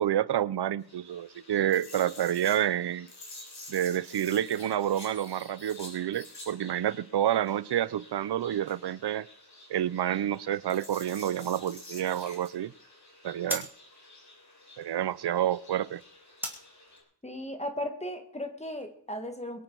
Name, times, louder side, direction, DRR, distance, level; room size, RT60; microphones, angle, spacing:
voice 1, 0.0-3.1 3.7-9.3 9.7-12.7 13.2-13.7 14.8-16.0, right 11 dB, 75° right, 0.6 m, -29 dB
sound 1, 0.8-17.0, left 2 dB, 45° left, 6.3 m, -50 dB
sound 2, 10.3-18.9, right 1 dB, 5° right, 2.5 m, -44 dB
voice 2, 17.2-19.6, left 1 dB, 15° left, 1.6 m, -36 dB
22.5 x 8.9 x 4.6 m
wide cardioid pair, 145°, 40 cm